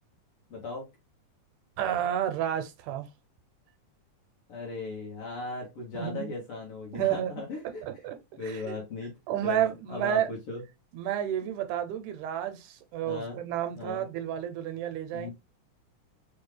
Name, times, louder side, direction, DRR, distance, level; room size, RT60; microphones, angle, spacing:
voice 1, 0.5-0.9 4.5-8.0 8.4-9.1 9.4-10.6 13.0-13.4 13.8-14.1 15.1-15.3, left 3 dB, 65° left, 1.5 m, -38 dB
voice 2, 1.8-3.1 5.9-6.3 6.9-7.4 7.8-8.2 8.4-8.8 9.3-10.3 10.9-15.3, right 10 dB, 80° right, 1.9 m, -31 dB
4.8 x 2.4 x 3.1 m
omnidirectional pair, 3.6 m